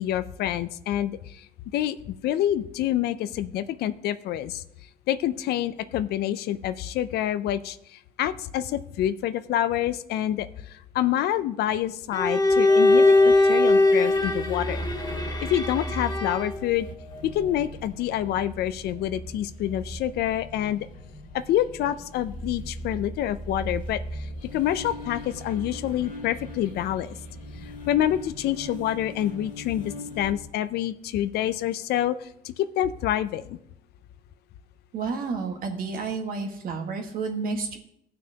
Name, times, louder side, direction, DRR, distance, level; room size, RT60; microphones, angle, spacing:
voice 1, 0.0-1.5 1.7-4.6 5.1-14.9 15.4-16.9 17.2-20.9 21.3-27.2 27.6-33.6, left 12 dB, 70° left, 14 dB, 0.5 m, -27 dB
Bowed string instrument, 12.1-16.6, left 2 dB, 25° left, 1.8 m, -21 dB
sound 1, 12.7-30.3, equal, 55° left, 2.2 m, -38 dB
voice 2, 34.9-37.8, right 4 dB, 60° right, 3 dB, 1.7 m, -30 dB
16.5 x 6.0 x 2.9 m, 0.76 s
cardioid pair, 110°, 17 cm